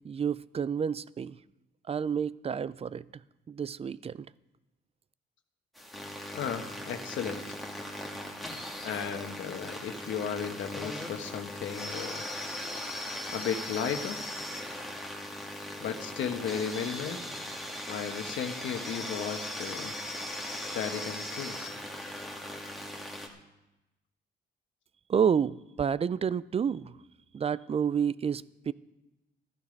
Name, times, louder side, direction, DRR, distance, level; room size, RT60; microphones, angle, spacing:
voice 1, 0.0-1.4 1.9-3.1 3.5-4.3 25.1-27.0 27.3-28.7, right 7 dB, 30° right, 0.4 m, -29 dB
sound 1, 5.7-23.3, left 1 dB, ahead, 2.1 m, -39 dB
voice 2, 6.3-7.4 8.8-12.2 13.3-14.2 15.8-17.2 17.9-19.9 20.7-21.6, left 7 dB, 75° left, 1.3 m, -35 dB
13.5 x 11.5 x 5.3 m
cardioid pair, 90°, 20 cm